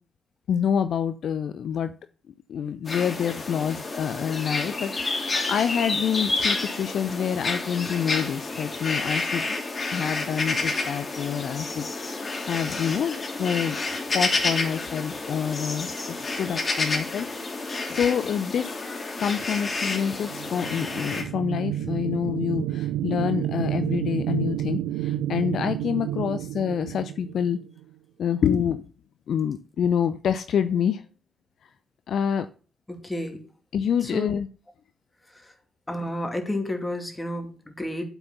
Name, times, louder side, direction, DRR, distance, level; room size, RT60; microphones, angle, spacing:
voice 1, 0.5-1.9 2.5-9.6 9.9-17.3 17.6-18.8 19.2-27.6 28.2-28.8 29.3-31.0 32.1-32.5 33.7-34.5, left 8 dB, 60° left, 11 dB, 0.5 m, -27 dB
sound 1, 2.9-21.2, left 3 dB, 35° left, 2.8 m, -30 dB
sound 2, 20.1-27.8, right 13 dB, 75° right, 0.4 m, -30 dB
voice 2, 32.9-33.4 34.0-34.3 35.3-35.5 35.9-38.1, left 1 dB, 20° left, 5 dB, 2.6 m, -31 dB
7.8 x 6.1 x 6.9 m, 0.38 s
hypercardioid pair, 40°, 0 cm